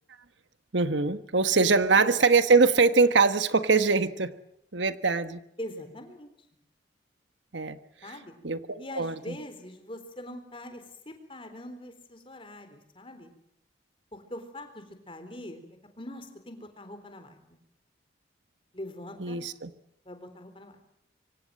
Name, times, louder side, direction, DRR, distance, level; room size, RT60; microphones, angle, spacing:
voice 1, 0.7-4.3 4.7-5.4 7.5-7.8 8.4-9.4 19.2-19.7, right 4 dB, 75° right, 11 dB, 1.3 m, -23 dB
voice 2, 1.5-2.1 5.6-6.3 8.0-8.3 8.8-13.3 14.1-15.7 16.0-17.6 18.7-19.4 20.1-20.8, left 1 dB, 30° left, 7 dB, 3.9 m, -43 dB
25.5 x 25.0 x 7.7 m, 0.76 s
head